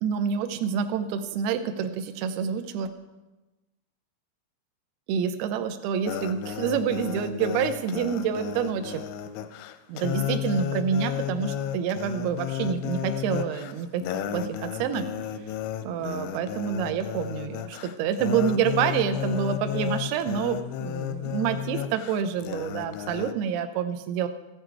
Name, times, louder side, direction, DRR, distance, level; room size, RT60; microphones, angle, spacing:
voice 1, 0.0-2.9 5.1-9.0 9.9-14.0 14.3-15.1 15.8-24.3, right 7 dB, 80° right, 7 dB, 2.3 m, -27 dB
sound 1, 6.1-23.3, left 10 dB, 90° left, 3.2 m, -33 dB
15.0 x 9.0 x 4.6 m, 1.1 s
omnidirectional pair, 5.4 m